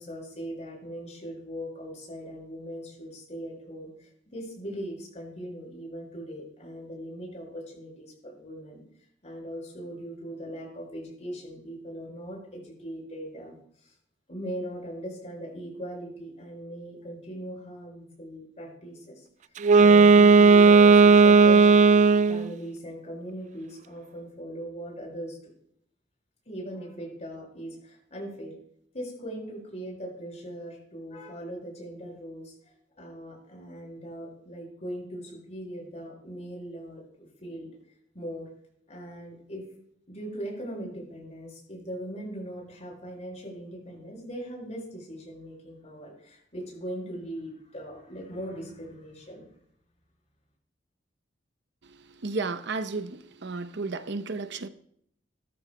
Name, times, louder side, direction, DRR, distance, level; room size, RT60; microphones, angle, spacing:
voice 1, 0.0-8.8 9.2-13.5 13.8-13.9 14.3-19.3 19.8-21.8 22.3-25.5 26.5-28.5 28.9-32.6 33.0-37.0 37.4-37.7 38.1-38.5 38.9-39.7 40.1-49.5, equal, 40° left, 5.7 m, -39 dB
Wind instrument woodwind instrument, 19.6-22.5, right 4 dB, 40° right, 0.3 m, -15 dB
voice 2, 52.2-54.7, right 3 dB, 65° right, 0.8 m, -33 dB
18.0 x 13.0 x 2.2 m
head